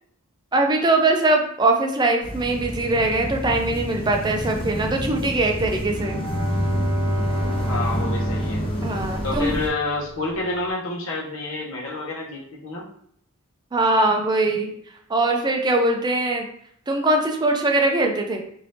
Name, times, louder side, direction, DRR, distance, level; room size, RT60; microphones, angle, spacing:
voice 1, 0.5-6.2 8.8-9.5 13.7-14.7 15.1-16.5 16.9-18.4, right 2 dB, 20° right, 3 dB, 0.4 m, -21 dB
sound 1, 2.2-9.7, equal, 25° left, 0.7 m, -30 dB
Bowed string instrument, 5.8-9.9, equal, 75° right, 0.7 m, -27 dB
voice 2, 7.7-8.6 9.2-12.9, left 2 dB, 65° left, -2 dB, 0.9 m, -29 dB
2.7 x 2.6 x 3.3 m, 0.68 s
head